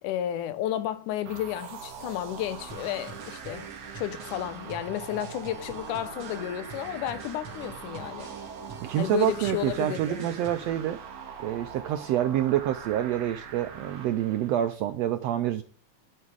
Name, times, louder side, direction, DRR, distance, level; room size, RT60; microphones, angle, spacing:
voice 1, 0.0-3.7 3.9-8.3 9.0-10.3, left 11 dB, 85° left, 2.3 m, -32 dB
sound 1, 1.3-14.8, right 6 dB, 60° right, 2.1 m, -43 dB
sound 2, 2.7-10.7, right 4 dB, 45° right, 2.3 m, -44 dB
voice 2, 8.8-11.0 11.4-15.6, right 12 dB, 85° right, 1.5 m, -27 dB
11.0 x 6.1 x 4.8 m
omnidirectional pair, 3.5 m